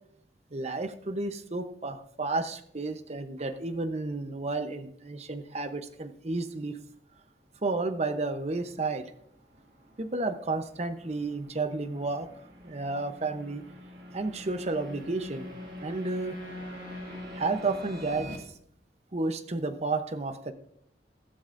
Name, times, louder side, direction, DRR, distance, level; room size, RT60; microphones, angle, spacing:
voice 1, 0.5-6.8 7.6-9.1 10.0-12.3 12.6-13.6 14.1-15.5 15.8-16.4 17.3-18.3 19.1-20.5, right 3 dB, 40° right, 9 dB, 0.8 m, -32 dB
sound 1, 6.9-18.4, left 1 dB, 60° right, 2.3 m, -46 dB
Wind instrument woodwind instrument, 14.5-18.5, left 1 dB, 50° left, 1.6 m, -46 dB
15.0 x 13.0 x 2.6 m, 0.70 s
head